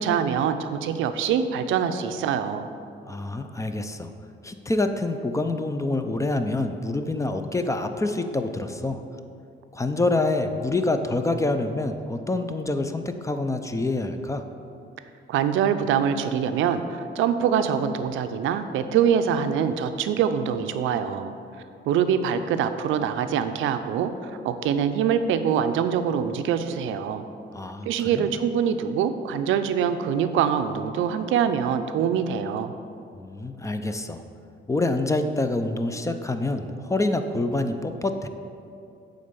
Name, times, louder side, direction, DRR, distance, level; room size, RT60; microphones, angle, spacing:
voice 1, 0.0-2.7 15.3-21.3 21.9-27.2 27.9-32.7, right 8 dB, 85° right, 9 dB, 0.5 m, -24 dB
voice 2, 3.0-4.1 4.4-9.0 9.7-14.4 27.5-28.3 33.1-34.2 34.7-38.3, left 2 dB, 15° left, 7 dB, 0.5 m, -26 dB
8.7 x 3.9 x 6.8 m, 2.6 s
cardioid pair, 90°, 20 cm